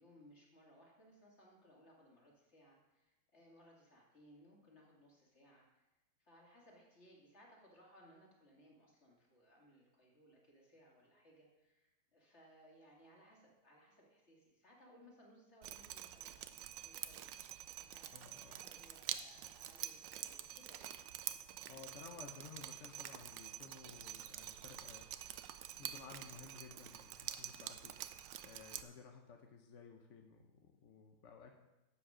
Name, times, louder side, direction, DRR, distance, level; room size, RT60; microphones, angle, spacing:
voice 1, 0.0-5.9 6.2-16.4 16.8-17.3 17.8-21.0, equal, 30° left, -2 dB, 2.7 m, -64 dB
Drip, 15.6-28.8, right 12 dB, 70° right, 1.2 m, -47 dB
voice 2, 18.1-18.6 21.7-25.1 25.7-31.5, left 5 dB, 55° left, 3 dB, 0.8 m, -56 dB
12.5 x 7.8 x 5.0 m, 1.0 s
omnidirectional pair, 2.3 m